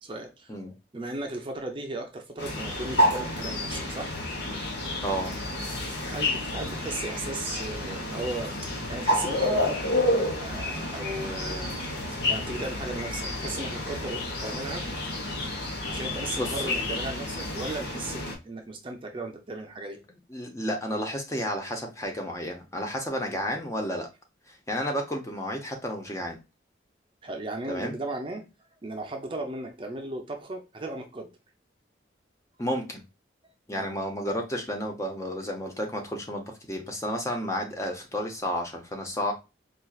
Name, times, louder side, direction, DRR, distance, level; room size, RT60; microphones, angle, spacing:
voice 1, 0.0-0.5 0.9-4.1 6.1-10.0 10.2-11.8 12.1-14.9 15.9-20.0 27.2-28.5 28.8-31.3 33.7-33.9, right 2 dB, 30° right, 0.5 m, -36 dB
sound 1, 2.4-18.3, left 1 dB, 65° left, 1.0 m, -30 dB
voice 2, 5.0-5.3 16.4-16.9 20.3-24.1 24.5-26.4 27.7-27.9 32.6-33.0 33.7-39.3, equal, 15° left, 0.6 m, -31 dB
4.2 x 2.4 x 2.3 m
head